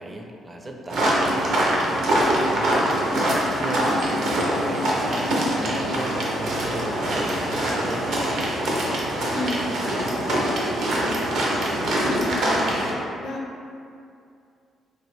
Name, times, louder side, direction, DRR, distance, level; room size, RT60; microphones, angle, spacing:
voice 1, 0.0-3.3 3.6-8.3, right 1 dB, 25° right, 1 dB, 0.4 m, -36 dB
sound 1, 0.9-12.9, right 1 dB, 70° right, 0.6 m, -23 dB
voice 2, 9.3-10.4 12.4-13.4, left 1 dB, 75° left, -2 dB, 0.5 m, -35 dB
3.0 x 2.5 x 3.1 m, 2.4 s
cardioid pair, 90°, 0 cm